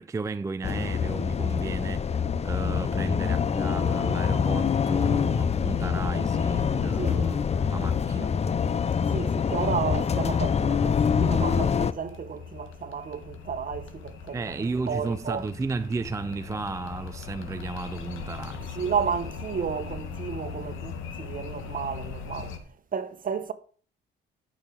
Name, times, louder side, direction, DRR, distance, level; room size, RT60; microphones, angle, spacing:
voice 1, 0.0-8.3 14.3-18.8, right 3 dB, 15° right, 0.4 m, -34 dB
sound 1, 0.6-11.9, left 6 dB, 30° left, 0.6 m, -25 dB
sound 2, 4.0-22.6, left 6 dB, 85° left, 1.8 m, -41 dB
voice 2, 9.1-14.5 14.9-15.5 18.7-22.6 22.9-23.5, right 6 dB, 45° right, 1.3 m, -32 dB
12.0 x 6.3 x 5.3 m
cardioid pair, 90°, 20 cm